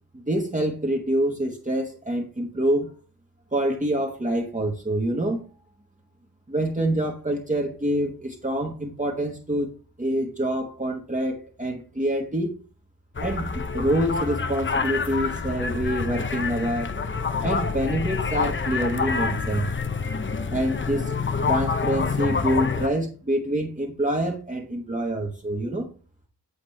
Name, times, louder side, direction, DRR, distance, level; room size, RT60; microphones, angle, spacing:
voice 1, 0.1-2.9 3.5-5.4 6.5-9.7 10.0-12.6 13.2-16.9 17.4-19.7 20.5-25.9, right 1 dB, 20° right, 0 dB, 1.2 m, -26 dB
sound 1, 13.2-22.9, left 5 dB, 35° left, 0.6 m, -27 dB
8.2 x 4.2 x 3.2 m, 0.37 s
wide cardioid pair, 55°, 36 cm